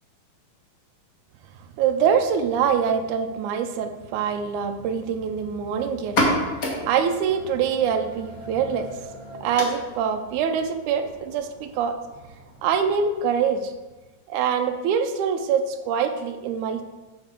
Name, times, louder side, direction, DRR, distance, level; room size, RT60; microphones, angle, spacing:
voice 1, 1.8-6.2 6.8-8.9 9.4-12.0 12.6-13.7 14.3-16.8, right 7 dB, 85° right, 7 dB, 2.0 m, -24 dB
sound 1, 6.0-13.4, left 1 dB, 50° left, 1.0 m, -32 dB
6.9 x 6.5 x 4.4 m, 1.2 s
omnidirectional pair, 3.5 m